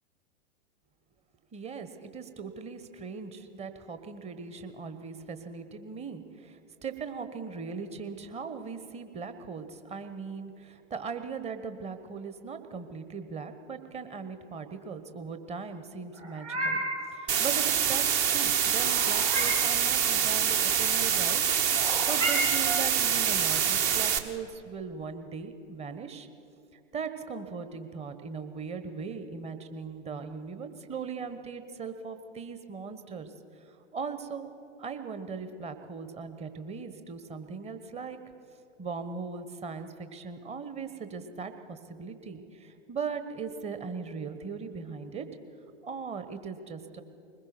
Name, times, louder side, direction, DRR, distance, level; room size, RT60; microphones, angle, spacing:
voice 1, 1.5-16.8 17.1-26.3 26.9-33.3 33.9-34.5 34.8-38.2 38.8-45.3 45.8-47.0, right 5 dB, 20° right, 9 dB, 1.2 m, -39 dB
Meow, 16.1-17.1 18.8-19.7 21.8-22.9, right 2 dB, 80° right, 4.1 m, -32 dB
sound 1, 17.3-24.2, right 8 dB, 35° right, 1.3 m, -26 dB
21.5 x 20.5 x 6.1 m, 2.6 s
figure-of-eight pair, 95°, 36 cm